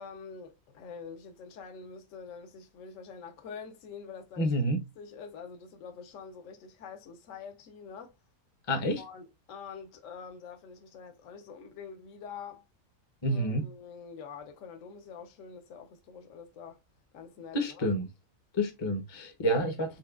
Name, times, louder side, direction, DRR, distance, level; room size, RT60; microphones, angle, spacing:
voice 1, 0.0-4.5 5.0-8.1 9.0-12.6 13.3-16.8 17.1-17.9, left 6 dB, 65° left, 0.9 m, -46 dB
voice 2, 4.4-4.8 8.7-9.0 13.2-13.6 17.5-18.1 18.5-20.0, equal, 30° left, 0.5 m, -29 dB
4.4 x 3.0 x 2.3 m
omnidirectional pair, 1.5 m